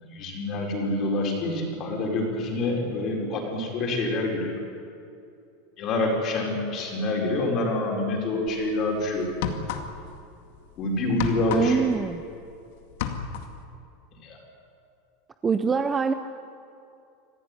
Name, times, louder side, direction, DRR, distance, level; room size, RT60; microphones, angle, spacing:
voice 1, 0.0-4.6 5.8-9.4 10.8-11.8 14.2-14.4, left 2 dB, 25° left, 0 dB, 4.8 m, -27 dB
sound 1, 8.5-8.7 9.3-10.2 10.5-12.6 12.8-13.6, left 8 dB, 55° left, 2.2 m, -31 dB
voice 2, 11.5-12.3 15.4-16.1, right 5 dB, 10° right, 9 dB, 0.6 m, -24 dB
26.0 x 17.0 x 9.9 m, 2.6 s
supercardioid pair, 180°, 0 cm